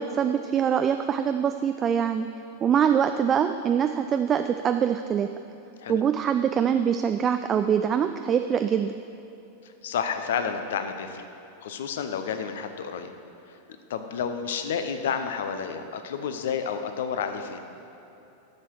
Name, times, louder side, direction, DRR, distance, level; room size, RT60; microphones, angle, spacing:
voice 1, 0.0-2.3 2.6-5.3 5.9-8.9, right 8 dB, 25° right, 8 dB, 0.3 m, -24 dB
voice 2, 9.6-11.2 11.6-13.1 13.5-13.6 13.9-17.6, left 7 dB, 60° left, 8 dB, 0.7 m, -30 dB
11.0 x 7.4 x 4.6 m, 3.0 s
figure-of-eight pair, 90°, 0 cm